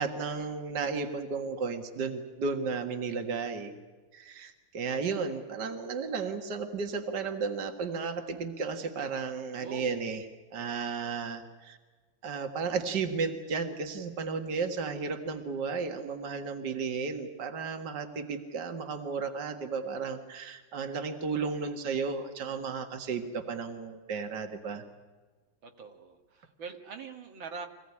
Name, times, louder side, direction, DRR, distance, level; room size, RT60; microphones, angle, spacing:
voice 1, 0.0-3.7 4.1-10.2 10.5-11.8 12.2-24.8, right 5 dB, 60° right, 6 dB, 2.3 m, -34 dB
voice 2, 4.8-5.6 9.5-10.1 25.6-27.7, right 5 dB, 85° right, 4 dB, 2.7 m, -44 dB
26.0 x 16.5 x 9.8 m, 1.3 s
omnidirectional pair, 2.1 m